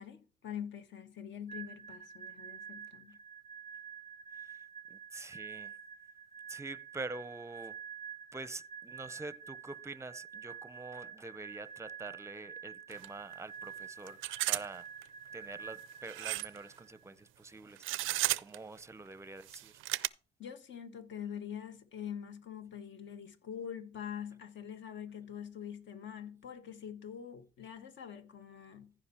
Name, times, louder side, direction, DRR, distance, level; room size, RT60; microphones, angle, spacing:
voice 1, 0.0-3.2 20.4-28.9, left 8 dB, 65° left, 1.4 m, -44 dB
sound 1, 1.5-17.1, right 7 dB, 20° left, 1.3 m, -48 dB
voice 2, 4.9-5.7 6.5-7.8 8.3-14.2 14.5-14.8 15.3-17.8 18.4-19.7, right 3 dB, 15° right, 0.6 m, -45 dB
sound 2, 12.9-13.1 13.3-13.4 14.1-14.7 15.0-15.1 16.1-16.6 17.8-18.6 19.4-20.1, right 17 dB, 85° right, 0.4 m, -33 dB
15.0 x 5.1 x 4.3 m
cardioid pair, 90°, 20 cm